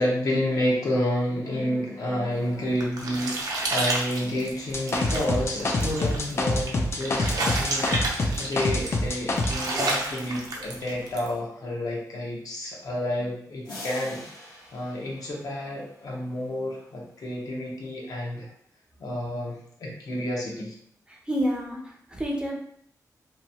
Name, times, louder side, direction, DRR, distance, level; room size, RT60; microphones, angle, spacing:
voice 1, 0.0-18.5 19.0-20.7, left 1 dB, 65° left, -2 dB, 0.8 m, -30 dB
sound 1, 2.4-11.3, right 2 dB, 70° right, 0.6 m, -31 dB
sound 2, 4.7-9.6, left 2 dB, 40° left, 0.4 m, -26 dB
sound 3, 13.6-16.1, left 1 dB, 80° left, 1.3 m, -43 dB
voice 2, 21.1-22.6, equal, 15° right, -2 dB, 0.5 m, -29 dB
2.8 x 2.2 x 2.7 m, 0.66 s
wide cardioid pair, 135°, 7 cm